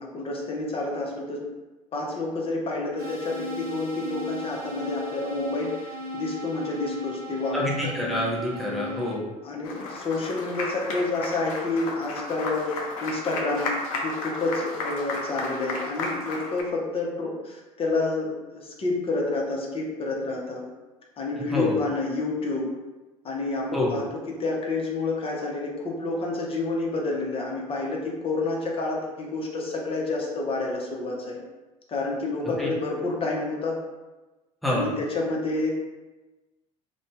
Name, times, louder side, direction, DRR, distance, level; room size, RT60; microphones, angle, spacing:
voice 1, 0.0-1.4 1.9-5.7 6.1-7.6 9.4-13.7 14.0-20.6 21.2-22.7 23.2-31.4 31.9-33.8 34.7-35.7, left 3 dB, 30° left, -2 dB, 0.7 m, -29 dB
sound 1, 3.0-9.2, left 1 dB, 60° right, 0.9 m, -36 dB
voice 2, 7.5-9.2 21.5-21.8 23.7-24.0 32.6-32.7 34.6-34.9, left 1 dB, ahead, -5 dB, 0.9 m, -27 dB
Applause, 9.6-16.6, left 3 dB, 70° left, 0.5 m, -33 dB
2.6 x 2.2 x 3.2 m, 1.1 s
figure-of-eight pair, 65°, 18 cm